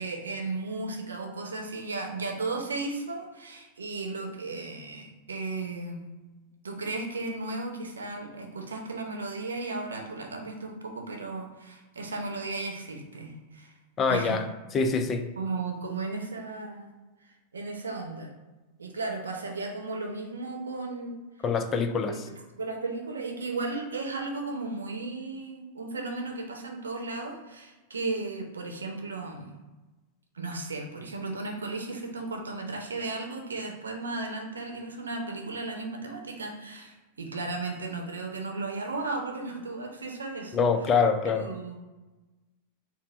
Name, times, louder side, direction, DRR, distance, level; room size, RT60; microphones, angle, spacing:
voice 1, 0.0-6.1 6.6-13.7 14.1-14.4 15.4-16.9 17.2-18.3 18.8-21.2 22.1-29.5 30.3-40.7 41.2-41.8, right 3 dB, 85° right, 2 dB, 0.7 m, -35 dB
voice 2, 14.0-14.4 14.7-15.3 21.4-22.2 40.5-41.5, left 5 dB, 30° left, 7 dB, 0.4 m, -25 dB
4.1 x 2.1 x 4.2 m, 1.1 s
hypercardioid pair, 95°, 0 cm